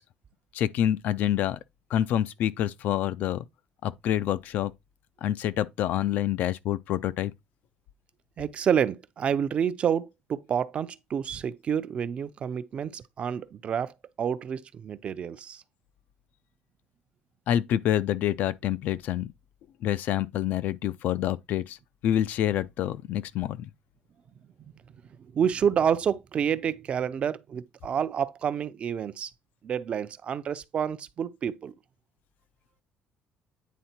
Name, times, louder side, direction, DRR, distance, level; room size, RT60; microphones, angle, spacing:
voice 1, 0.5-1.6 1.9-3.4 3.8-4.7 5.2-7.3 17.5-19.3 19.8-21.8 22.0-23.7, left 11 dB, 65° left, 0.5 m, -27 dB
voice 2, 8.4-15.6 25.3-29.3 29.6-31.7, right 8 dB, 40° right, 0.5 m, -29 dB
9.3 x 3.7 x 4.3 m
cardioid pair, 145°, 3 cm